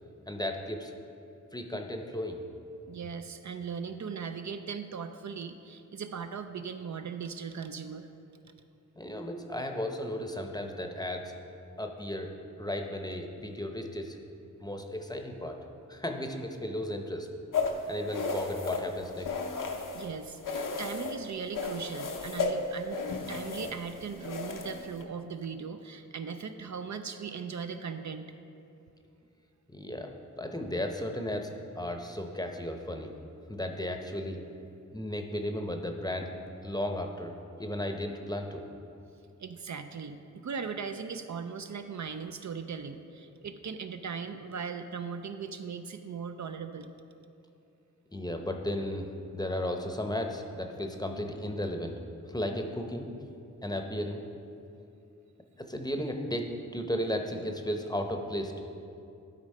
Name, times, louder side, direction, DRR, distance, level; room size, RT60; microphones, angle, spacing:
voice 1, 0.3-0.9 1.5-2.4 9.0-11.3 11.8-14.2 14.6-15.6 15.9-17.3 17.9-19.3 29.7-33.1 33.5-34.4 34.9-36.3 36.6-38.6 48.1-51.9 52.3-53.1 53.6-54.2 55.6-58.6, left 1 dB, 10° left, 4 dB, 0.7 m, -35 dB
voice 2, 2.9-8.1 19.9-28.3 39.4-46.9, right 6 dB, 60° right, 8 dB, 0.5 m, -39 dB
sound 1, 17.5-20.1 20.4-21.2 21.5-25.0, left 4 dB, 80° left, 0.8 m, -34 dB
11.5 x 4.0 x 5.4 m, 2.7 s
wide cardioid pair, 70°, 32 cm